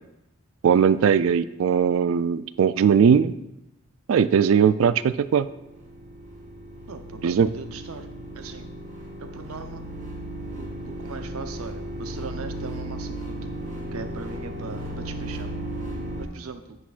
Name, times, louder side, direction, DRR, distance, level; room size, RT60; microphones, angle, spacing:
voice 1, 0.6-3.3 4.1-5.5 7.2-7.5, right 7 dB, 65° right, 15 dB, 0.3 m, -19 dB
sound 1, 5.3-16.3, right 1 dB, 35° right, 1.4 m, -35 dB
voice 2, 6.9-8.1 8.3-8.7 9.2-9.8 10.6-13.5 13.9-15.5 16.2-16.8, right 4 dB, 80° right, 8 dB, 0.7 m, -39 dB
9.8 x 8.3 x 2.5 m, 0.89 s
head